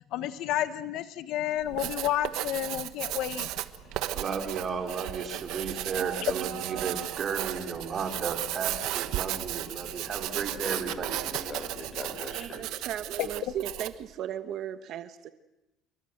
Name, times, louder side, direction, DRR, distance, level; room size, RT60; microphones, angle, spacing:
voice 1, 0.1-3.5 13.2-13.3, left 12 dB, 60° left, 1.0 m, -30 dB
Writing, 1.6-14.0, right 15 dB, 70° right, 1.3 m, -35 dB
sound 1, 3.2-13.6, left 2 dB, 40° left, 4.8 m, -52 dB
voice 2, 4.1-11.2, right 5 dB, 30° right, 3.6 m, -34 dB
voice 3, 5.8-7.2 12.2-15.3, right 10 dB, 50° right, 1.2 m, -37 dB
voice 4, 10.5-12.6, left 2 dB, 25° left, 4.9 m, -41 dB
27.5 x 23.5 x 7.9 m
cardioid pair, 155°, 0 cm